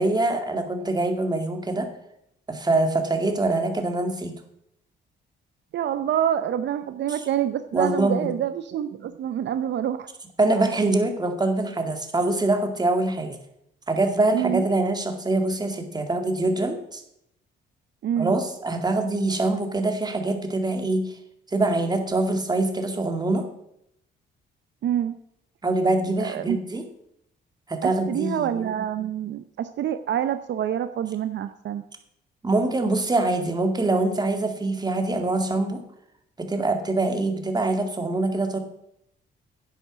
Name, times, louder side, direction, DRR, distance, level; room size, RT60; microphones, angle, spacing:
voice 1, 0.0-1.9 2.5-4.4 7.1-7.2 7.7-8.3 10.4-13.4 13.9-17.0 18.2-21.2 21.5-23.4 25.6-26.8 27.7-28.7 32.4-35.8 36.4-38.6, right 2 dB, 20° right, 5 dB, 2.1 m, -24 dB
voice 2, 5.7-10.1 14.3-14.6 18.0-18.4 24.8-25.2 26.2-26.6 27.8-31.8, right 10 dB, 65° right, 11 dB, 0.7 m, -27 dB
10.5 x 8.2 x 6.2 m, 0.77 s
cardioid pair, 90°, 20 cm